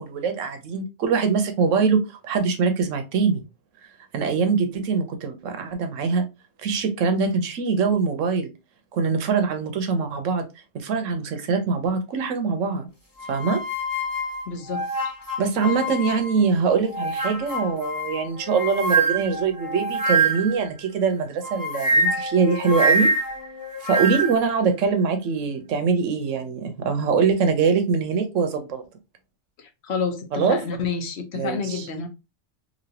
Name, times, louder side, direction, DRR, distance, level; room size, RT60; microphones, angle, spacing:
voice 1, 0.0-3.4 4.1-6.2 6.6-8.5 8.9-10.5 10.7-12.8 13.3-13.6 15.4-23.1 23.8-28.8 30.3-30.6 31.3-31.9, right 5 dB, 70° right, 7 dB, 1.0 m, -23 dB
sound 1, 13.2-16.5 16.9-20.6 21.4-24.5, right 2 dB, 20° left, 0.6 m, -25 dB
voice 2, 14.5-14.9 29.6-32.1, left 5 dB, 60° left, 5 dB, 0.9 m, -29 dB
3.0 x 2.7 x 2.7 m, 0.26 s
omnidirectional pair, 1.4 m